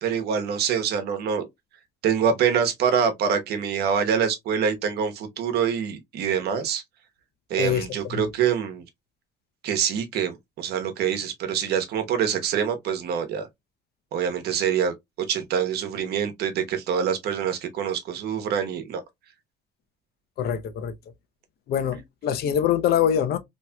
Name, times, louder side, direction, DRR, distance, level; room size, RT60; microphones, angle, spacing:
voice 1, 0.0-1.5 2.0-6.8 7.5-8.8 9.6-13.5 14.1-14.9 15.3-19.0, right 7 dB, 70° right, 1.1 m, -25 dB
voice 2, 7.6-8.2 20.4-20.9 21.7-23.4, left 9 dB, 65° left, 0.8 m, -24 dB
4.2 x 3.1 x 2.2 m
cardioid pair, 110°, 17 cm